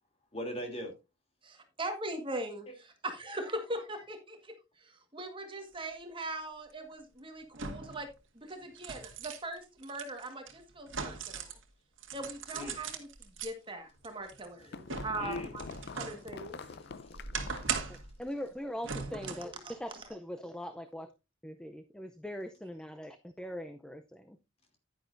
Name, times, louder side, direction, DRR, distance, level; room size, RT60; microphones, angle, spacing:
voice 1, 0.3-0.9 2.7-2.8 12.5-12.7 15.2-15.5 15.8-16.0 16.7-17.2 17.8-18.0, equal, 30° left, 2.8 m, -41 dB
voice 2, 1.4-8.1 8.3-11.5 12.1-15.6 15.9-16.6 19.6-20.0, right 1 dB, 25° right, 1.5 m, -41 dB
sound 1, 6.2-6.3 7.5-8.0 8.5-11.6 12.0-13.5 14.0-16.2 16.6-18.1 18.8-19.5 20.0-20.1, right 5 dB, 65° right, 1.6 m, -39 dB
sound 2, 14.1-17.8, left 4 dB, 55° left, 0.5 m, -46 dB
voice 3, 17.9-21.1 21.4-24.4, equal, 5° left, 0.5 m, -41 dB
10.5 x 10.0 x 2.6 m
head